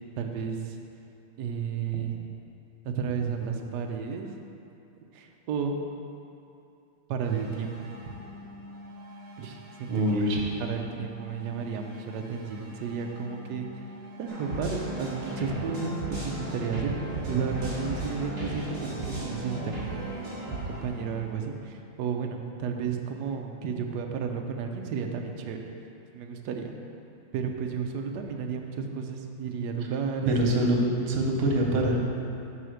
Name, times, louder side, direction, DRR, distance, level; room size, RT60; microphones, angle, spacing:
voice 1, 0.2-0.8 1.4-2.2 2.8-4.3 5.1-5.8 7.1-7.9 9.4-9.9 10.6-13.8 14.2-20.4 20.7-25.7 26.1-26.7 27.3-30.3 31.0-31.2, right 6 dB, 70° right, 3 dB, 1.0 m, -32 dB
sound 1, 7.2-21.2, left 1 dB, 50° left, 2.4 m, -47 dB
voice 2, 9.9-10.5 30.3-30.8 31.1-32.0, right 1 dB, 90° right, 0 dB, 1.8 m, -24 dB
sound 2, 14.3-20.6, right 1 dB, 20° right, 1.8 m, -35 dB
5.7 x 5.0 x 6.3 m, 2.7 s
omnidirectional pair, 2.3 m